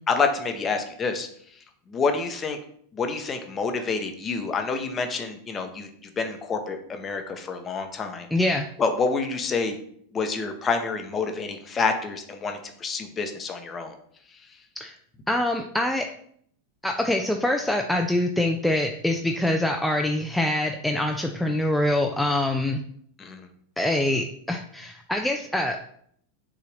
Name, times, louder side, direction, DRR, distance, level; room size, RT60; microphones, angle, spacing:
voice 1, 0.1-1.3 1.9-2.6 2.9-5.9 6.2-8.3 8.8-9.8 10.1-14.0 23.2-23.4, left 4 dB, 25° left, 5 dB, 0.7 m, -28 dB
voice 2, 8.3-8.7 14.8-14.9 15.3-16.1 16.8-22.8 23.8-25.8, left 1 dB, 5° left, 2 dB, 0.4 m, -24 dB
6.7 x 2.4 x 3.3 m, 0.65 s
hypercardioid pair, 105°, 0 cm